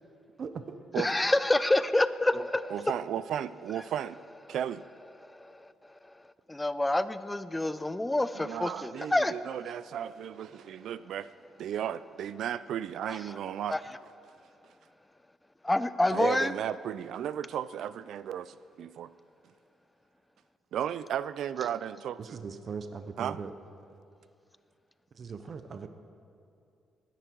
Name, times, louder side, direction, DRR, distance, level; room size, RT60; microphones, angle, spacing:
voice 1, 0.4-0.7 22.2-23.5 25.1-25.9, right 5 dB, 50° right, 9 dB, 0.8 m, -39 dB
voice 2, 0.9-2.8 5.3-5.7 6.5-9.3 13.1-13.2 13.7-13.8 15.6-16.5, left 1 dB, 10° left, 14 dB, 0.6 m, -27 dB
voice 3, 2.7-4.2 4.5-4.9 8.3-11.3 11.6-13.8 16.1-19.1 20.7-22.4 23.2-23.4, right 10 dB, 75° right, 16 dB, 0.4 m, -34 dB
20.0 x 10.0 x 4.6 m, 2.5 s
cardioid pair, 90°, 0 cm